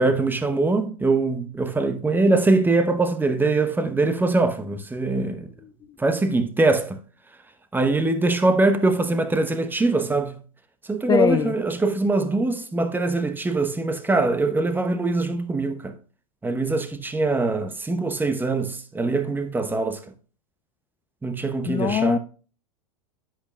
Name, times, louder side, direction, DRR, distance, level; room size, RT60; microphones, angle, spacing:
voice 1, 0.0-5.5 6.0-7.0 7.7-10.4 10.9-16.0 16.4-20.0 21.2-22.2, right 3 dB, 10° right, 0.9 m, -22 dB
voice 2, 11.1-11.5 21.7-22.2, left 8 dB, 20° left, 0.4 m, -22 dB
10.0 x 8.3 x 2.3 m
hypercardioid pair, 95°, 19 cm